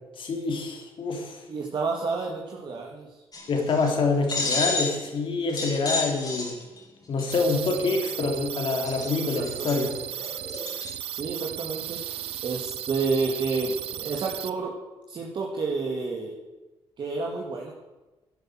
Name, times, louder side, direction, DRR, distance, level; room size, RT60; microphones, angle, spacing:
voice 1, 0.1-1.4 3.5-6.6 7.1-9.9, left 3 dB, 60° left, 3 dB, 3.5 m, -26 dB
voice 2, 1.5-3.2 9.2-10.0 11.1-12.0 12.4-14.7 15.1-16.4 17.0-17.7, right 4 dB, 55° right, -1 dB, 2.3 m, -30 dB
sound 1, 3.3-3.9 4.3-5.1 5.5-6.8 7.2-7.7 8.4-8.5 8.7-10.9, left 3 dB, 40° left, 4.5 m, -31 dB
sound 2, 7.3-14.5, right 12 dB, 90° right, 0.6 m, -35 dB
12.0 x 10.5 x 7.8 m, 1.1 s
cardioid pair, 95°, 10 cm